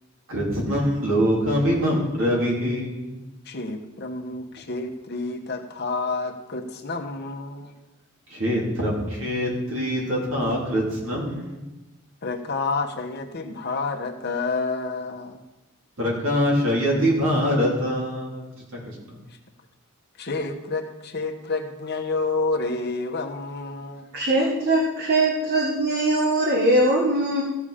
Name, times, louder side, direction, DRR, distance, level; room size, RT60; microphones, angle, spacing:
voice 1, 0.3-3.2 8.3-11.7 16.0-18.4 18.7-19.2, equal, 70° right, -3 dB, 3.4 m, -24 dB
voice 2, 3.4-7.7 12.2-15.4 19.3-19.4 20.2-24.1, left 3 dB, 50° left, 3 dB, 1.1 m, -29 dB
voice 3, 24.1-27.4, right 1 dB, 50° right, -1 dB, 1.4 m, -21 dB
14.5 x 7.1 x 5.1 m, 1.1 s
head